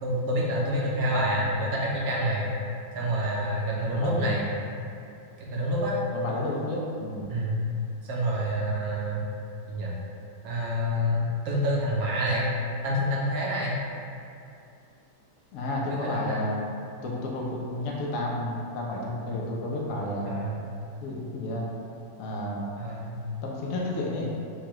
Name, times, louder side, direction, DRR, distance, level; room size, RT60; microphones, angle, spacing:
voice 1, 0.0-2.5 2.9-4.5 5.4-6.0 7.3-7.6 8.0-9.3 9.7-9.9 10.4-12.5 12.8-13.8 15.8-16.5 20.3-20.6 22.8-23.2, equal, 65° right, -5 dB, 1.0 m, -27 dB
voice 2, 3.9-4.4 6.1-7.3 15.5-16.6 17.0-20.4 21.0-21.7 22.2-22.7 23.4-24.3, left 1 dB, 70° left, -3 dB, 0.7 m, -31 dB
4.5 x 2.3 x 3.0 m, 2.6 s
omnidirectional pair, 1.9 m